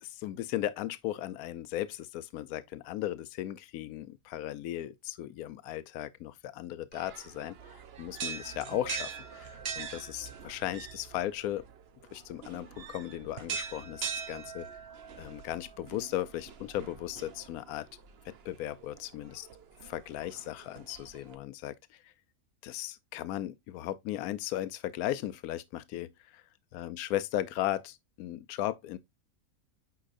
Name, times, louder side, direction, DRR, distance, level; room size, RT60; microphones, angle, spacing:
voice 1, 0.0-11.6 12.1-14.7 15.1-17.9 18.2-19.5 19.8-22.1 22.6-26.4 26.7-29.0, left 13 dB, 85° left, 1.1 m, -36 dB
sound 1, 6.9-21.3, right 7 dB, 50° right, 0.9 m, -43 dB
8.5 x 4.9 x 2.5 m
omnidirectional pair, 1.5 m